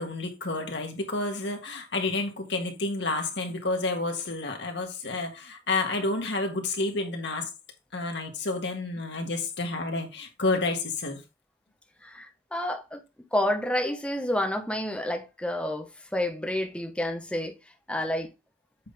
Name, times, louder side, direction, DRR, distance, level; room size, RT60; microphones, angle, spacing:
voice 1, 0.0-7.5 7.9-11.2, left 2 dB, 75° left, 1.7 m, -30 dB
voice 2, 12.0-17.5 17.9-18.3, left 1 dB, 5° left, 1.0 m, -29 dB
7.7 x 4.1 x 3.5 m
head